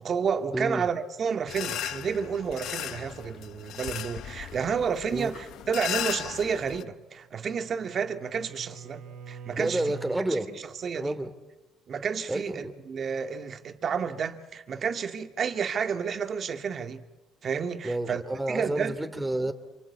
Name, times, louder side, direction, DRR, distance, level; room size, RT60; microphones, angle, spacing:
voice 1, 0.0-9.8 10.3-10.4 10.8-11.2 11.9-17.0 17.4-18.2 18.5-18.9, right 6 dB, 45° right, 2.1 m, -30 dB
voice 2, 0.5-0.9 5.1-5.3 9.6-10.6 10.9-11.3 12.3-12.7 17.8-19.5, right 1 dB, 10° right, 2.8 m, -30 dB
sound 1, 1.5-6.8, left 12 dB, 70° left, 0.9 m, -36 dB
Bowed string instrument, 7.0-10.3, right 6 dB, 75° right, 3.5 m, -44 dB
28.0 x 24.0 x 8.5 m
cardioid pair, 95°, 0 cm